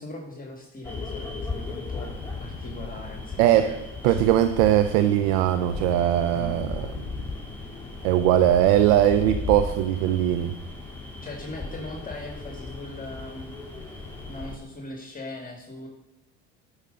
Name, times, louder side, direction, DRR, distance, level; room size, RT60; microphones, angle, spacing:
voice 1, 0.0-2.1 2.4-3.8 4.1-4.2 6.3-6.6 11.2-13.5 13.8-14.0 14.3-15.9, left 2 dB, 25° left, 1 dB, 2.3 m, -39 dB
sound 1, 0.8-14.6, left 3 dB, 5° left, 3.2 m, -36 dB
voice 2, 3.4-3.7 4.0-6.7 8.0-10.6, right 11 dB, 75° right, 10 dB, 0.7 m, -20 dB
12.5 x 6.5 x 5.3 m, 0.93 s
supercardioid pair, 80°, 36 cm